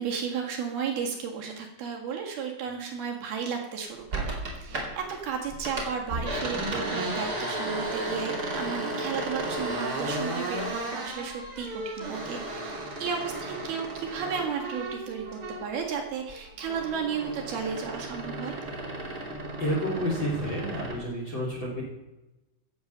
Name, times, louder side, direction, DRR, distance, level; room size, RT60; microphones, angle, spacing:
voice 1, 0.0-18.5, right 6 dB, 60° right, 1 dB, 3.1 m, -34 dB
sound 1, 4.1-5.2 5.5-15.8 16.2-21.0, right 1 dB, 30° right, 1.8 m, -34 dB
voice 2, 19.3-21.8, equal, 30° left, -2 dB, 2.6 m, -30 dB
15.5 x 8.1 x 6.8 m, 1.0 s
omnidirectional pair, 5.9 m